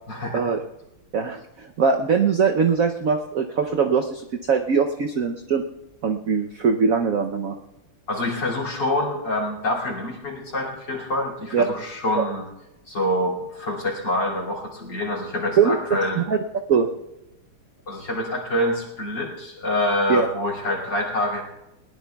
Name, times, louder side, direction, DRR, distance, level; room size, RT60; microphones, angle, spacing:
voice 1, 0.1-0.5 8.1-12.5 12.9-16.2 17.9-21.4, left 1 dB, 55° left, -2 dB, 3.3 m, -26 dB
voice 2, 1.1-5.6 6.0-7.6 11.5-11.6 12.1-12.2 15.6-16.4 16.7-16.9 20.1-20.3, right 6 dB, 75° right, 4 dB, 0.7 m, -21 dB
21.0 x 18.5 x 2.3 m, 0.93 s
omnidirectional pair, 2.4 m